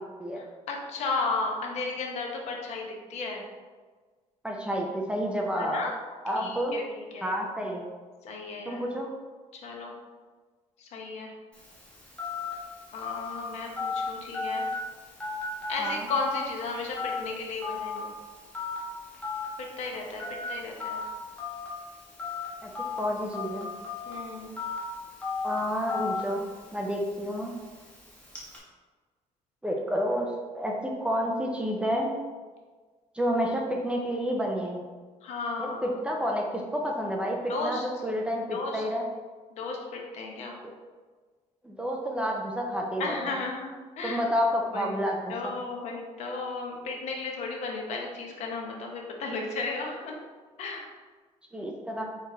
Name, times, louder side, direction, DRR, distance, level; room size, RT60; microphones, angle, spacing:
voice 1, 0.4-3.5 5.6-5.9 6.4-7.4 8.2-8.8 9.5-9.9 10.8-11.3 12.9-14.7 15.7-18.2 19.6-20.2 20.5-21.0 24.1-24.5 35.2-35.9 37.5-37.8 38.5-38.8 39.5-40.6 43.0-44.2 44.7-44.9 45.3-50.2 50.6-50.9, left 3 dB, 60° left, 1 dB, 0.8 m, -34 dB
voice 2, 4.4-5.8 6.2-6.8 7.2-7.8 8.7-9.1 15.8-16.1 22.6-22.7 23.0-23.7 25.4-27.5 29.6-32.2 33.1-34.8 35.6-39.1 40.6-40.7 41.6-43.1 44.0-45.5 51.5-52.1, equal, 10° right, 0 dB, 0.4 m, -30 dB
Telephone, 11.5-28.6, left 4 dB, 10° left, 1.0 m, -36 dB
4.5 x 3.1 x 3.7 m, 1.4 s
cardioid pair, 175°, 13 cm